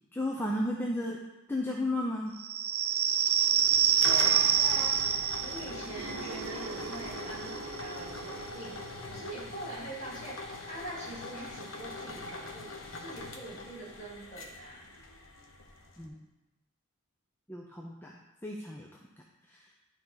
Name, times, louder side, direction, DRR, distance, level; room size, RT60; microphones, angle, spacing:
voice 1, 0.1-1.2 1.5-2.4 16.0-16.3 17.5-19.7, left 1 dB, 10° left, -2 dB, 0.6 m, -34 dB
sound 1, 2.4-9.7, right 9 dB, 85° right, 0.7 m, -29 dB
sound 2, 3.6-16.1, left 2 dB, 65° left, 1.1 m, -43 dB
voice 2, 4.0-5.0 5.4-14.9, right 1 dB, 35° left, -7 dB, 3.3 m, -43 dB
12.5 x 4.9 x 4.0 m, 1.0 s
head